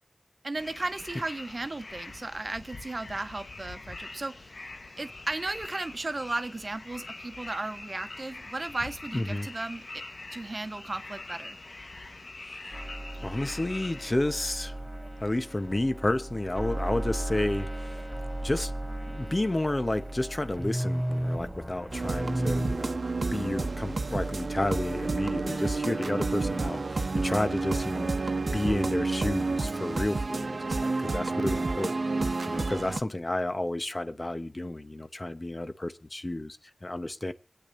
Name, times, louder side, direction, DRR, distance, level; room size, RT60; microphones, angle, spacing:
voice 1, 0.4-4.5 5.0-10.0 10.3-11.6, right 2 dB, 60° right, 0.9 m, -35 dB
sound 1, 0.5-14.1, left 2 dB, 80° left, 1.2 m, -44 dB
voice 2, 9.1-9.5 12.4-12.8 13.2-14.8 15.2-18.1 18.4-18.7 19.0-37.3, left 1 dB, 40° left, 0.8 m, -31 dB
sound 2, 12.7-22.7, right 1 dB, 15° right, 2.6 m, -35 dB
sound 3, 21.9-33.0, right 3 dB, 85° right, 0.8 m, -30 dB
26.0 x 8.6 x 2.6 m
wide cardioid pair, 45°, 0 cm